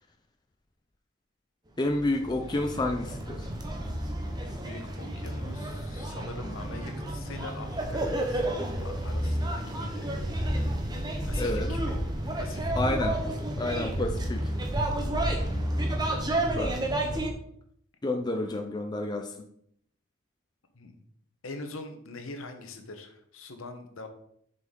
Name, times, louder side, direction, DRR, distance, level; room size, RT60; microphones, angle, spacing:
voice 1, 1.8-3.4 11.4-11.7 12.8-13.2 13.6-14.5 16.6-16.8 18.0-19.3, left 2 dB, 20° left, 3 dB, 0.4 m, -29 dB
sound 1, 1.8-17.3, right 1 dB, 20° right, 0.8 m, -31 dB
voice 2, 4.4-10.1 11.2-12.0 12.4-13.0 15.0-15.3 16.0-16.3 20.7-21.0 21.4-24.1, left 2 dB, 70° left, 6 dB, 0.9 m, -43 dB
6.4 x 5.2 x 3.7 m, 0.69 s
head